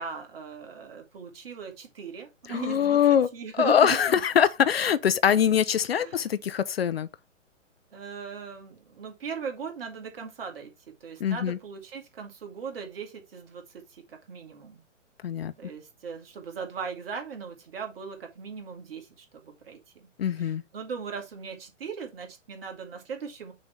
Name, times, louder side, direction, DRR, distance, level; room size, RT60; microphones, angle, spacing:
voice 1, 0.0-4.0 5.9-6.2 7.9-10.7 11.0-14.8 15.6-20.1 20.4-23.5, right 6 dB, 50° right, 2.2 m, -39 dB
voice 2, 2.5-3.3 3.5-7.1 11.2-11.6 15.2-15.5 20.2-20.6, left 8 dB, 50° left, 0.6 m, -23 dB
6.3 x 3.4 x 5.6 m
figure-of-eight pair, 125°, 38 cm